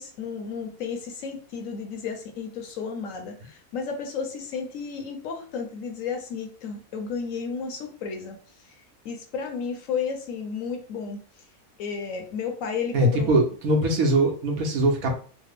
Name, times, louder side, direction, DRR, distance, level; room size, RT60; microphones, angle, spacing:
voice 1, 0.0-8.4 8.6-8.7 9.0-11.2 11.8-13.3, left 6 dB, 70° left, 4 dB, 0.9 m, -32 dB
voice 2, 12.9-15.2, right 1 dB, 70° right, 1 dB, 1.2 m, -22 dB
3.2 x 2.0 x 3.5 m, 0.42 s
omnidirectional pair, 1.6 m